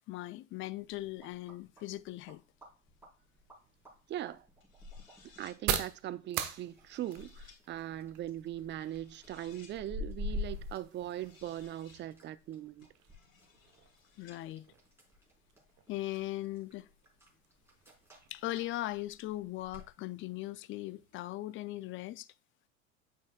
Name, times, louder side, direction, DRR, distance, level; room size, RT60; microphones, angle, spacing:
voice 1, 0.0-2.4 14.2-14.7 15.9-16.9 18.3-22.3, left 16 dB, 30° left, 0.5 m, -39 dB
sound 1, 0.8-19.9, left 2 dB, 5° right, 4.5 m, -48 dB
sound 2, 3.5-21.1, right 10 dB, 45° right, 1.3 m, -45 dB
voice 2, 4.1-4.4 5.4-12.9, right 12 dB, 30° right, 0.6 m, -40 dB
sound 3, 4.6-5.6 6.5-7.6 8.8-9.8 10.9-12.0 12.8-14.4, left 5 dB, 80° left, 3.0 m, -62 dB
9.5 x 7.6 x 2.4 m
figure-of-eight pair, 80°, 39 cm